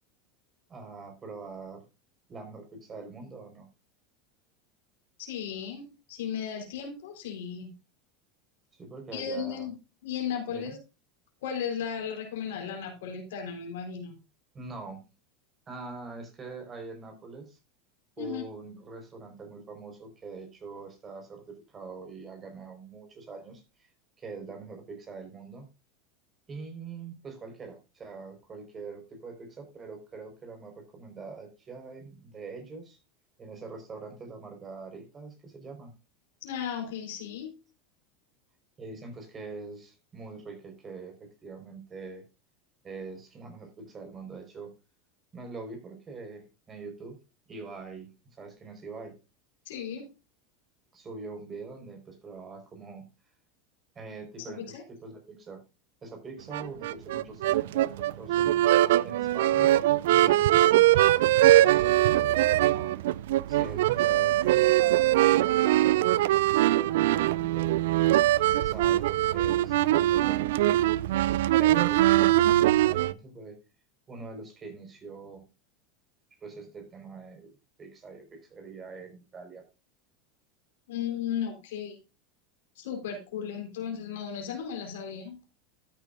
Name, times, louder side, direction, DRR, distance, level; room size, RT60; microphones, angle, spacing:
voice 1, 0.7-1.8 2.3-3.7 8.7-9.7 10.5-10.8 14.5-15.1 15.7-17.6 18.2-23.9 24.2-25.7 26.5-33.0 33.4-35.9 38.8-42.2 42.8-44.7 45.3-47.2 47.5-49.2 50.9-53.1 53.9-55.6 56.0-58.5 59.0-59.7 60.0-61.2 61.7-63.0 63.5-66.4 66.7-67.9 68.5-70.9 71.5-73.6 74.1-75.5 76.4-77.5 77.8-79.7, right 4 dB, 30° right, 5 dB, 4.7 m, -43 dB
voice 2, 5.2-7.7 9.1-9.8 10.0-10.8 11.4-14.2 18.2-18.4 36.4-37.5 49.7-50.1 54.5-54.8 80.9-82.0 82.8-85.4, left 7 dB, 75° left, 3 dB, 4.0 m, -35 dB
sound 1, 56.5-73.1, right 14 dB, 70° right, 0.4 m, -22 dB
13.5 x 9.0 x 2.5 m, 0.29 s
hypercardioid pair, 90°, 0 cm